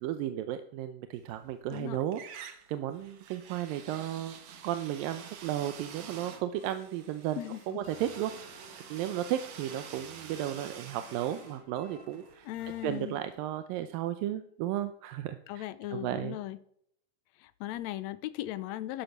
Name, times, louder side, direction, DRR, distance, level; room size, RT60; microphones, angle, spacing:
voice 1, 0.0-8.6 8.9-12.5 12.8-16.4, right 12 dB, 85° right, 9 dB, 2.5 m, -34 dB
sound 1, 1.2-1.8 2.1-13.0, right 7 dB, 60° right, 2.3 m, -48 dB
sound 2, 5.2-13.6, left 2 dB, 35° left, 2.2 m, -59 dB
voice 2, 7.4-7.8 12.4-13.2 15.5-16.6 17.4-19.0, left 14 dB, 80° left, 13 dB, 1.6 m, -38 dB
12.5 x 11.0 x 5.9 m, 0.67 s
omnidirectional pair, 3.9 m